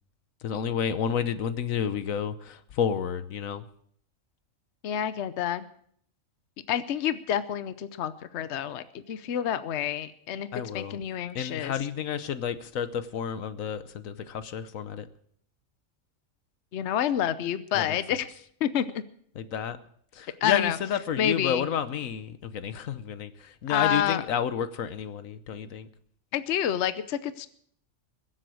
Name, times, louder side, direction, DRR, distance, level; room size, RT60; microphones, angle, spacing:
voice 1, 0.4-3.6 10.5-11.0 11.3-15.1 17.7-18.0 19.4-19.8 20.1-25.9, left 8 dB, 80° left, 1.3 m, -30 dB
voice 2, 4.8-5.7 6.7-10.5 10.7-11.7 16.7-18.3 18.6-19.0 20.4-20.8 21.2-21.7 23.7-24.2 26.3-27.5, left 10 dB, 60° left, 1.0 m, -28 dB
22.0 x 7.8 x 6.3 m
omnidirectional pair, 1.4 m